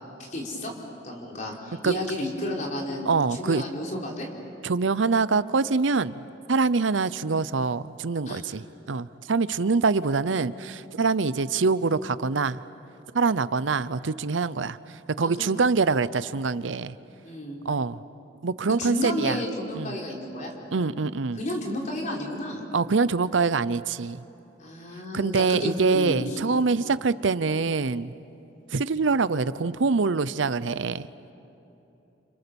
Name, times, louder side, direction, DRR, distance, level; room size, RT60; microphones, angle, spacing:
voice 1, 0.2-0.7 1.0-4.3 8.3-8.4 15.2-15.5 17.2-17.6 18.8-20.5 21.3-22.6 24.6-26.2, left 1 dB, 40° left, -1 dB, 4.4 m, -32 dB
voice 2, 3.0-3.6 4.6-6.2 6.5-12.6 13.1-17.0 17.6-18.0 18.4-19.4 19.7-19.9 20.7-21.4 22.7-24.2 25.1-28.1 28.7-31.1, right 4 dB, 85° right, 16 dB, 0.7 m, -25 dB
30.0 x 28.0 x 7.0 m, 3.0 s
head